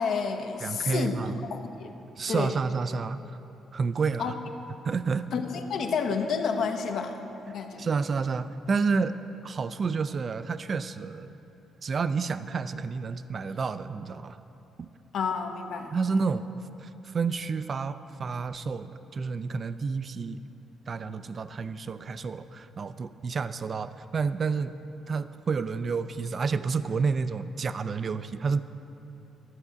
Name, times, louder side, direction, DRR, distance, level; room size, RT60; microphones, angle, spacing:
voice 1, 0.0-1.2 1.5-1.9 2.3-2.6 4.2-4.3 5.3-7.1 7.5-7.9 15.1-15.9, left 5 dB, 70° left, 5 dB, 0.7 m, -30 dB
voice 2, 0.6-1.5 2.2-3.4 3.7-4.4 4.8-5.3 7.8-9.2 9.4-11.3 11.8-14.4 14.8-14.9 15.9-16.5 16.8-20.4 20.9-24.7 25.1-28.6, right 5 dB, 45° right, 13 dB, 0.3 m, -30 dB
12.5 x 4.8 x 6.9 m, 2.9 s
cardioid pair, 90°, 0 cm